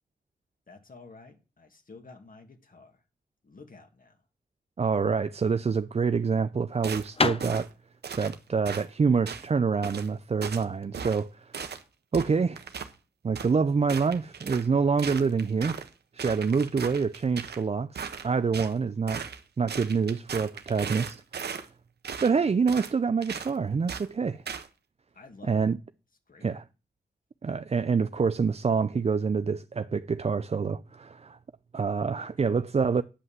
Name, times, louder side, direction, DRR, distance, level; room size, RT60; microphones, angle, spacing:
voice 1, 0.7-3.0 3.4-4.2 25.1-25.7 26.3-26.5 32.2-32.7, left 3 dB, 55° left, 2.4 m, -51 dB
voice 2, 4.8-7.7 8.2-11.5 12.1-12.6 13.2-15.8 16.1-19.2 19.6-21.5 22.2-24.4 25.5-25.8 26.4-26.6 27.4-31.4 31.7-33.0, right 5 dB, 40° right, 0.5 m, -26 dB
sound 1, 5.3-10.9, left 3 dB, 35° left, 0.9 m, -33 dB
sound 2, 6.8-7.1 7.4-7.7 8.0-8.4 8.7-8.8 9.3-9.5 9.8-10.1 10.4-10.6 10.9-11.2 11.5-11.8 12.1-12.9 13.3-13.5 13.9-14.7 15.0-15.9 16.2-17.6 17.9-18.7 19.1-19.4 19.7-21.7 22.0-22.3 22.7-22.9 23.2-23.5 23.9-24.1 24.5-24.7, right 6 dB, 75° right, 1.1 m, -37 dB
9.9 x 5.4 x 7.4 m
cardioid pair, 45°, 17 cm